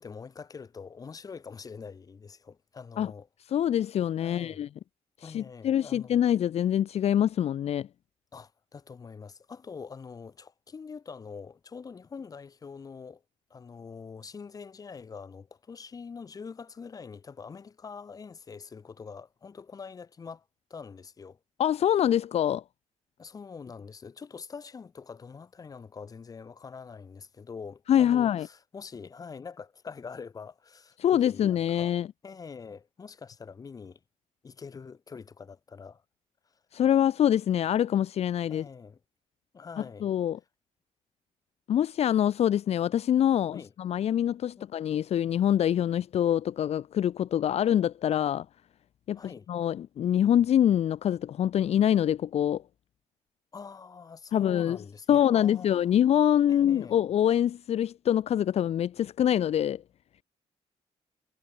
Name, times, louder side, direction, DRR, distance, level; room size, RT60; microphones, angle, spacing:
voice 1, 0.0-3.3 4.2-4.7 5.2-6.2 8.3-13.2 13.5-20.4 20.7-21.4 23.2-31.9 32.2-34.0 34.4-36.0 38.5-39.0 39.5-40.1 43.5-43.7 44.6-44.7 49.1-49.5 53.5-55.7 56.5-57.0, left 5 dB, 30° left, 4.2 m, -44 dB
voice 2, 3.5-4.7 5.2-7.9 21.6-22.6 27.9-28.5 31.0-32.1 36.7-38.6 40.0-40.4 41.7-48.4 49.1-52.6 54.3-54.8 55.1-59.8, left 10 dB, 55° left, 1.2 m, -25 dB
wide cardioid pair, 180°, 13 cm